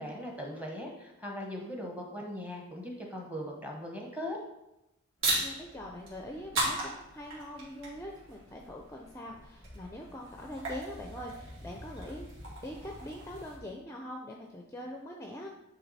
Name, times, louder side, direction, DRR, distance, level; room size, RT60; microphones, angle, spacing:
voice 1, 0.0-4.4, equal, 5° right, 0 dB, 0.9 m, -39 dB
sound 1, 5.2-13.6, right 1 dB, 60° right, 2.2 m, -38 dB
voice 2, 5.4-12.4 12.6-15.5, left 1 dB, 10° left, 1 dB, 0.4 m, -43 dB
9.2 x 3.1 x 4.1 m, 0.91 s
head